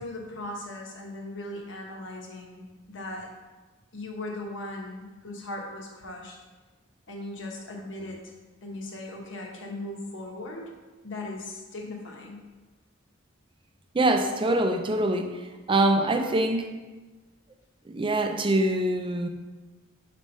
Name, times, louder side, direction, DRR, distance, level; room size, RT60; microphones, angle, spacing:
voice 1, 0.0-2.6 2.9-3.3 3.9-6.4 7.1-8.3 8.6-10.7 11.0-12.4, left 2 dB, 65° left, 0 dB, 1.2 m, -38 dB
voice 2, 13.9-15.4 15.7-16.7 17.9-19.3, right 1 dB, 25° right, 5 dB, 0.5 m, -24 dB
4.8 x 4.3 x 5.4 m, 1.2 s
head